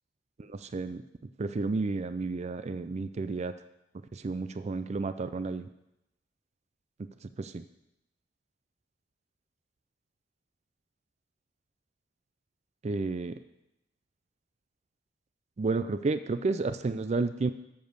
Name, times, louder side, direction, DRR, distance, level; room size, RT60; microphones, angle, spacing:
voice 1, 0.4-1.0 1.4-3.5 4.1-5.7 7.4-7.6 12.8-13.4 15.6-17.5, right 3 dB, 35° right, 11 dB, 0.4 m, -31 dB
7.9 x 7.1 x 6.6 m, 0.85 s
head